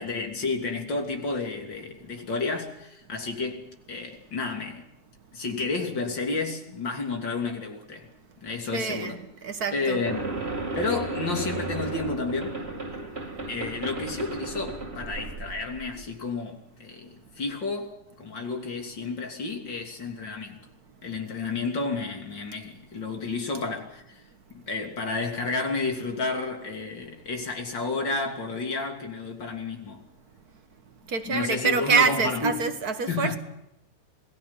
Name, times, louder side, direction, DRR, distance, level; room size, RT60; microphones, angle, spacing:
voice 1, 0.0-4.9 5.3-8.1 8.4-9.2 9.7-10.4 10.7-12.6 13.5-17.9 18.2-20.6 21.0-24.2 24.5-30.0 31.3-32.7 33.1-33.4, left 3 dB, 85° left, 3.7 m, -31 dB
voice 2, 8.7-10.0 31.1-33.4, right 5 dB, 55° right, 1.9 m, -26 dB
sound 1, 10.1-16.1, right 2 dB, 35° right, 2.6 m, -34 dB
27.0 x 19.0 x 5.8 m
omnidirectional pair, 2.0 m